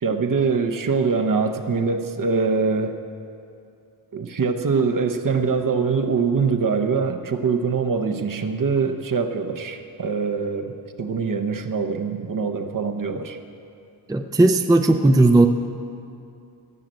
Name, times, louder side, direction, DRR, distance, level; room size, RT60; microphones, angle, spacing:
voice 1, 0.0-3.0 4.1-13.4, right 5 dB, 45° right, 6 dB, 0.9 m, -23 dB
voice 2, 14.1-15.5, right 2 dB, 10° right, 6 dB, 0.5 m, -16 dB
15.0 x 6.5 x 8.9 m, 2.6 s
wide cardioid pair, 105°, 44 cm